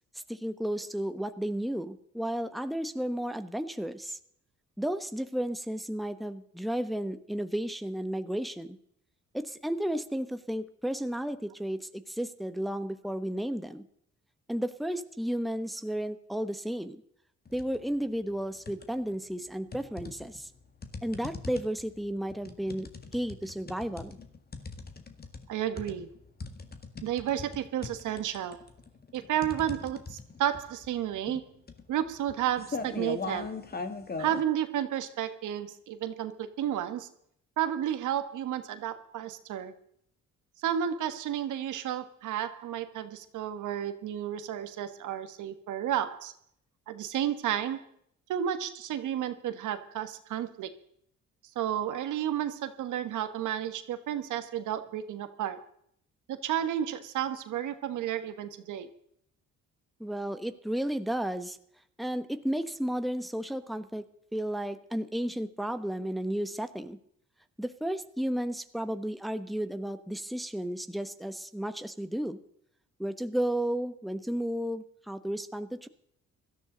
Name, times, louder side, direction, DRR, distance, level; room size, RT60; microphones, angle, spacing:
voice 1, 0.3-4.2 4.8-8.8 9.3-13.8 14.5-17.0 17.5-20.5 21.0-24.2 60.0-61.6 62.0-64.0 64.3-67.0 67.6-72.4 73.0-75.9, right 1 dB, ahead, 10 dB, 1.0 m, -33 dB
sound 1, 17.5-17.8 18.2-19.2 19.7-34.4, left 4 dB, 30° left, 1.9 m, -40 dB
voice 2, 25.5-26.1 27.0-28.6 29.1-31.4 31.9-33.5 34.2-37.1 37.6-39.7 40.6-46.3 46.9-47.8 48.3-50.7 51.5-55.6 56.3-58.9, right 10 dB, 80° right, 10 dB, 1.4 m, -32 dB
17.0 x 13.5 x 3.9 m, 0.69 s
cardioid pair, 90°, 30 cm